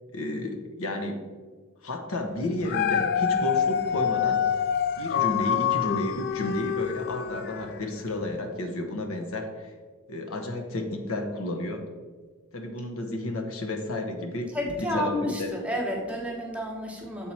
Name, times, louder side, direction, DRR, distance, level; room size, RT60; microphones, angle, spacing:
voice 1, 0.1-1.3 1.8-4.4 5.0-9.7 10.1-11.8 12.5-14.5 14.8-15.5, left 1 dB, 70° left, 4 dB, 0.8 m, -32 dB
Dog, 2.5-7.8 8.3-8.4, left 8 dB, 45° left, 0.3 m, -26 dB
voice 2, 14.5-17.3, left 1 dB, 5° right, -2 dB, 1.0 m, -30 dB
7.2 x 4.6 x 4.2 m, 1.5 s
head